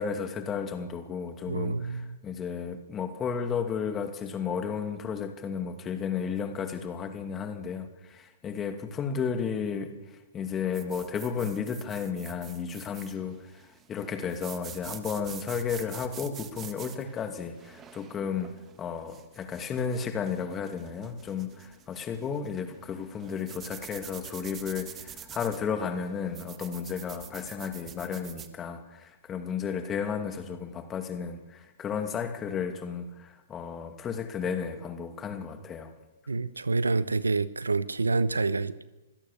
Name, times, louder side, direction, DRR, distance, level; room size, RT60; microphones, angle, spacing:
voice 1, 0.0-18.5 18.8-35.9, left 6 dB, 20° left, 2.5 m, -33 dB
voice 2, 1.5-2.2 36.3-38.8, right 3 dB, 85° right, 1.0 m, -27 dB
sound 1, 10.7-28.5, right 9 dB, 20° right, 1.6 m, -47 dB
25.5 x 16.5 x 6.8 m
hypercardioid pair, 120°, 0 cm